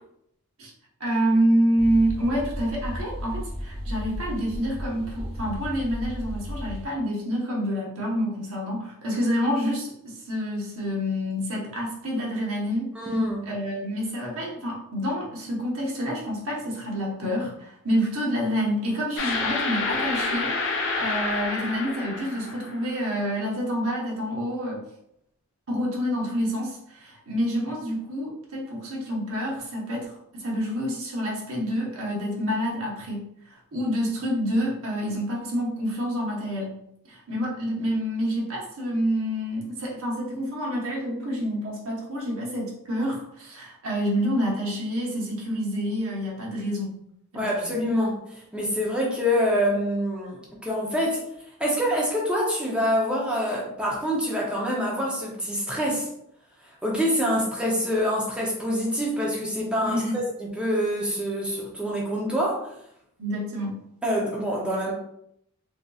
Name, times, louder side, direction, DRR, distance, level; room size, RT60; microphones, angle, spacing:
voice 1, 1.0-12.9 13.5-24.8 25.7-36.8 37.1-47.0 47.3-47.8 59.8-60.2 63.2-63.8, equal, 65° right, -3 dB, 1.0 m, -28 dB
sound 1, 1.8-6.8, equal, 25° left, 1.1 m, -34 dB
voice 2, 12.9-13.4 47.3-51.2 51.6-56.1 56.7-62.7 64.0-64.9, equal, 5° right, -4 dB, 0.6 m, -26 dB
sound 2, 19.2-23.1, left 3 dB, 55° left, 0.5 m, -28 dB
3.6 x 2.7 x 2.3 m, 0.75 s
head